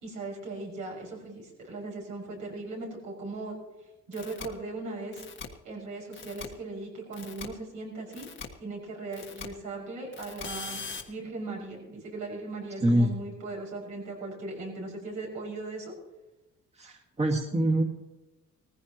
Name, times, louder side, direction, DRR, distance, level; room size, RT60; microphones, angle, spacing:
voice 1, 0.0-3.6 4.1-5.2 5.6-8.3 8.6-10.8 11.1-15.9, right 2 dB, 80° right, -2 dB, 6.1 m, -38 dB
sound 1, 4.1-4.5 5.1-5.5 6.1-6.5 7.1-7.5 8.1-8.5 9.1-9.5 10.1-11.0, left 5 dB, 40° left, 1.6 m, -40 dB
voice 2, 12.8-13.1 16.8-17.8, right 1 dB, 20° right, 0 dB, 2.0 m, -25 dB
18.0 x 15.0 x 3.1 m, 1.0 s
cardioid pair, 90°, 30 cm